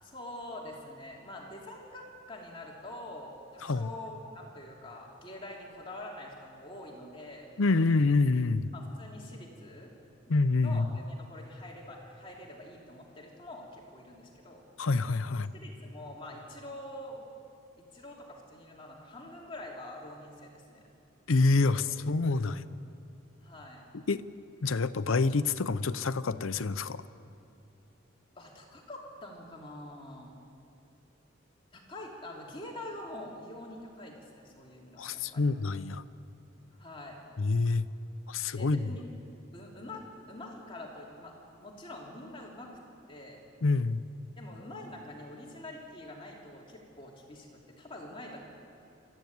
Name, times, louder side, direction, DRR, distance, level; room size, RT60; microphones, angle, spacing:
voice 1, 0.0-7.5 8.7-9.9 10.6-14.6 15.5-17.2 17.9-20.9 21.6-21.8 22.4-22.8 23.4-23.8 28.3-30.4 31.7-35.5 36.8-37.2 38.6-39.0 39.5-41.3 41.6-42.7 43.1-43.4 44.4-48.4, left 1 dB, 25° left, -2 dB, 2.9 m, -45 dB
voice 2, 7.6-8.7 10.3-10.9 14.8-15.5 21.3-22.6 24.1-24.2 24.6-27.0 35.0-36.0 37.4-37.9 38.3-38.9 43.6-44.0, left 3 dB, 90° left, 13 dB, 0.7 m, -27 dB
24.0 x 13.5 x 9.4 m, 2.7 s
head